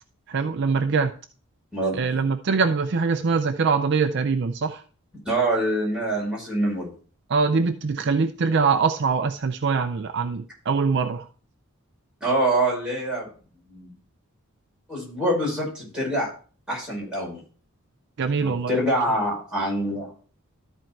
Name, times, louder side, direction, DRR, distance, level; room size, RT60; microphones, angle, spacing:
voice 1, 0.3-1.1 1.9-4.8 7.3-11.3 18.2-18.9, right 5 dB, 55° right, 8 dB, 0.5 m, -23 dB
voice 2, 5.2-6.9 12.2-13.3 13.7-13.9 14.9-16.3 16.7-17.4 18.4-20.1, right 1 dB, 5° right, -4 dB, 5.1 m, -25 dB
13.0 x 4.5 x 4.5 m, 0.40 s
head